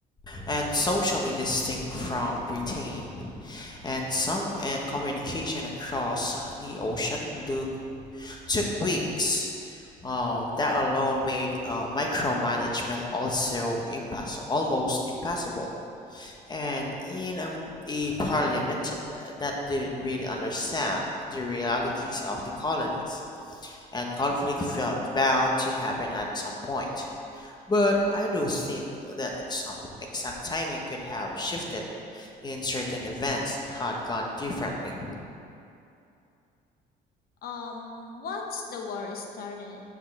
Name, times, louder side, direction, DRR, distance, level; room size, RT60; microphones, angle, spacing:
voice 1, 0.3-7.7 8.1-15.7 16.1-17.5 17.9-21.0 21.3-23.2 23.6-27.1 27.3-29.7 30.1-31.8 32.1-35.1, left 1 dB, 25° left, 0 dB, 1.2 m, -29 dB
voice 2, 37.4-39.8, left 4 dB, 60° left, 2 dB, 1.1 m, -36 dB
6.6 x 5.3 x 6.0 m, 2.7 s
cardioid pair, 110°, 17 cm